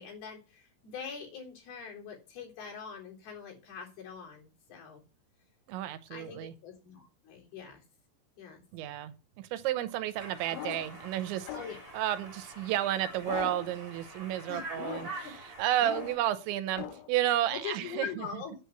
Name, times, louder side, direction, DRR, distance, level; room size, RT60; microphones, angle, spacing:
voice 1, 0.0-5.0 6.1-7.8 8.4-8.6 11.5-11.8 14.5-14.6 15.2-15.3 17.5-18.6, left 7 dB, 60° left, 5.4 m, -43 dB
voice 2, 5.7-6.5 8.7-11.5 11.9-18.4, right 13 dB, 85° right, 3.3 m, -32 dB
Conversation, 10.1-16.1, right 2 dB, 30° right, 6.1 m, -46 dB
sound 1, 10.5-11.0 11.5-11.9 13.2-13.8 14.7-15.3 15.8-16.3 16.8-17.1, left 12 dB, 85° left, 3.1 m, -40 dB
9.9 x 8.3 x 6.9 m
omnidirectional pair, 5.2 m